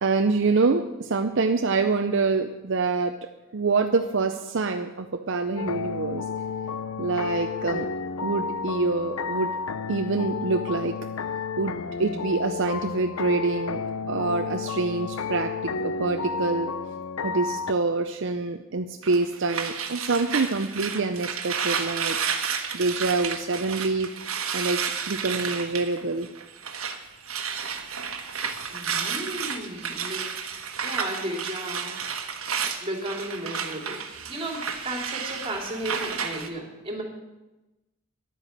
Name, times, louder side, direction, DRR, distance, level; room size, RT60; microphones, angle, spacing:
voice 1, 0.0-3.1 3.5-6.2 7.0-7.9 8.2-9.5 9.9-11.0 11.6-13.8 14.1-16.7 17.2-22.4 22.7-24.1 24.5-26.3 31.0-31.1, right 3 dB, 60° right, 6 dB, 0.6 m, -26 dB
sound 1, 5.6-17.7, left 5 dB, 80° left, 0.6 m, -31 dB
sound 2, 19.0-27.0 27.2-36.5, right 6 dB, 80° right, 1.3 m, -31 dB
voice 2, 28.7-30.3 30.8-31.9 32.2-32.4 32.8-37.0, right 1 dB, 25° right, 1 dB, 2.8 m, -34 dB
11.0 x 9.1 x 7.4 m, 1.0 s
head